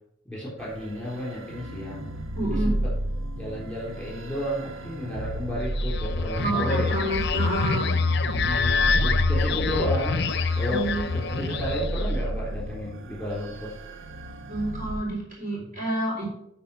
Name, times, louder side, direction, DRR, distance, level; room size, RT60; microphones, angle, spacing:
voice 1, 0.3-2.1 2.4-2.9 3.3-6.9 8.3-13.7, equal, 5° left, -6 dB, 3.6 m, -32 dB
sound 1, 0.6-15.0, right 1 dB, 75° right, 0.7 m, -33 dB
voice 2, 2.4-2.7 6.4-7.9 10.7-11.0 14.5-16.2, right 1 dB, 45° right, -4 dB, 3.8 m, -29 dB
sound 2, 5.6-12.3, left 4 dB, 60° left, 0.6 m, -26 dB
11.0 x 4.5 x 5.6 m, 0.79 s
head